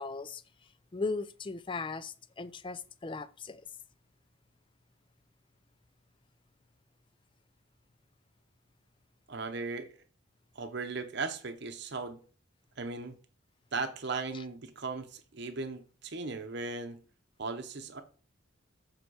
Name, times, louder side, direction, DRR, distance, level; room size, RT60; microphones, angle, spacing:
voice 1, 0.0-3.7 14.3-14.4, left 3 dB, 25° left, 0.4 m, -38 dB
voice 2, 9.3-9.9 10.6-12.2 12.8-13.1 13.7-17.0 17.4-18.0, right 4 dB, 55° right, 0.8 m, -37 dB
7.8 x 4.5 x 4.8 m
head